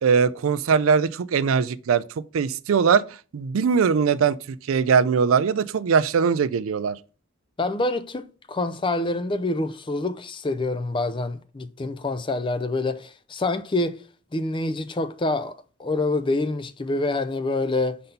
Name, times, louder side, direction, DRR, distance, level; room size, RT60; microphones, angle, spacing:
voice 1, 0.0-2.0 2.3-3.0 3.3-7.0, right 6 dB, 85° right, 0.4 m, -21 dB
voice 2, 7.6-14.0 14.3-15.5 15.8-18.0, left 2 dB, 25° left, 0.4 m, -26 dB
5.5 x 4.1 x 5.2 m
head